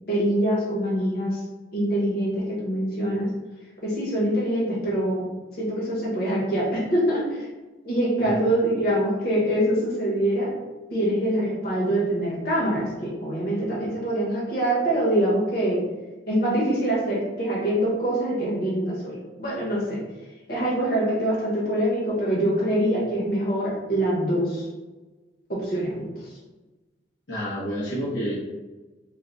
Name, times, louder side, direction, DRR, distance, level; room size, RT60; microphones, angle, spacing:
voice 1, 0.1-1.4 1.7-3.3 3.8-5.2 5.5-7.4 7.8-10.5 10.9-15.8 16.3-20.0 20.5-24.7 25.5-26.3, right 1 dB, 60° left, -6 dB, 1.3 m, -24 dB
voice 2, 27.3-28.3, equal, 85° left, -9 dB, 1.0 m, -29 dB
3.9 x 2.2 x 3.9 m, 1.2 s
head